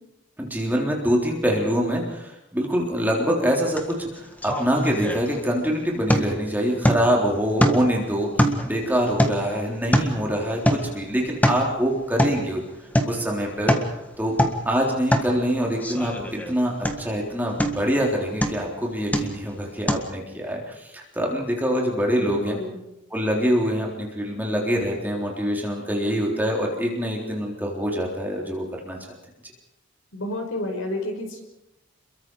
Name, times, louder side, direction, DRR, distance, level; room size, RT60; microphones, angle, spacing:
voice 1, 0.4-8.3 8.6-12.6 13.1-14.3 14.7-16.7 17.0-22.6 23.1-29.0, equal, 10° right, -1 dB, 3.7 m, -25 dB
sound 1, 3.8-3.9 4.2-5.6 6.1-6.5 6.8-7.2 7.6-8.0 8.4-10.3 10.6-11.0 11.3-11.7 12.2-12.5 12.9-13.2 13.5-13.9 14.3-14.7 15.1-15.3 15.8-16.5 16.8-17.2 17.6-18.0 18.4-18.7 19.1-19.5 19.9-20.0, equal, 10° left, 1.7 m, -23 dB
voice 2, 22.1-22.8 30.1-31.4, left 1 dB, 70° left, 3 dB, 5.5 m, -30 dB
29.0 x 22.5 x 4.8 m, 0.90 s
head